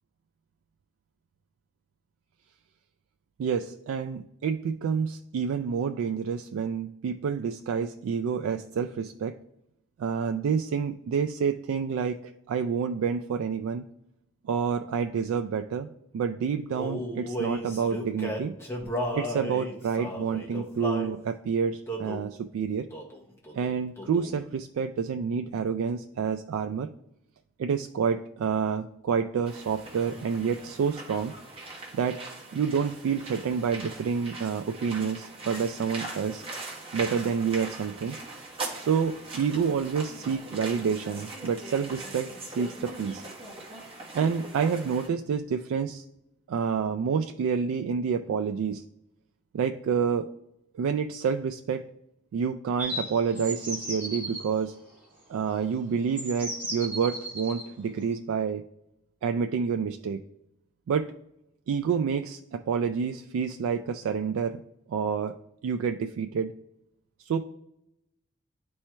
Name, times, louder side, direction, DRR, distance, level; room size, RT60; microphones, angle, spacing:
voice 1, 3.4-9.4 10.0-13.9 14.4-15.9 16.1-18.5 19.1-22.9 23.5-26.9 27.6-31.3 31.9-32.2 32.5-36.4 36.9-38.2 38.8-43.2 44.1-46.0 46.5-48.8 49.5-50.3 50.7-51.8 52.3-54.7 55.3-58.6 59.2-60.2 60.9-61.1 61.7-64.6 64.9-65.4 65.6-66.5 67.2-67.4, right 6 dB, 90° right, 7 dB, 0.3 m, -28 dB
Male singing, 16.7-21.1 21.9-22.3 22.9-23.2 23.5-24.4, equal, 15° left, 0.8 m, -34 dB
FX - pasos sobre gravilla, 29.5-45.1, right 2 dB, 25° right, 1.2 m, -41 dB
sound 1, 52.8-54.4 55.5-55.6 56.2-57.7, right 1 dB, 10° right, 2.0 m, -35 dB
10.5 x 4.4 x 2.2 m, 0.84 s
head